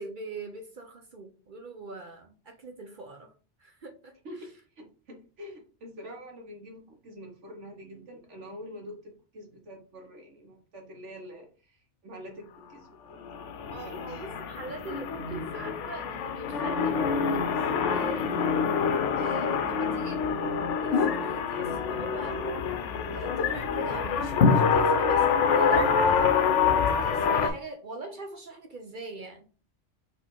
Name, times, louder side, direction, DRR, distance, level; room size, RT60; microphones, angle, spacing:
voice 1, 0.0-3.3 3.6-4.2 13.7-18.3 19.1-20.2 20.8-22.4 23.1-26.2 26.7-29.5, right 2 dB, 50° right, 0.7 m, -42 dB
voice 2, 4.8-14.2, equal, 90° right, 1.6 m, -46 dB
sound 1, 13.2-27.5, left 6 dB, 90° left, 1.0 m, -26 dB
4.2 x 2.8 x 4.4 m
omnidirectional pair, 1.2 m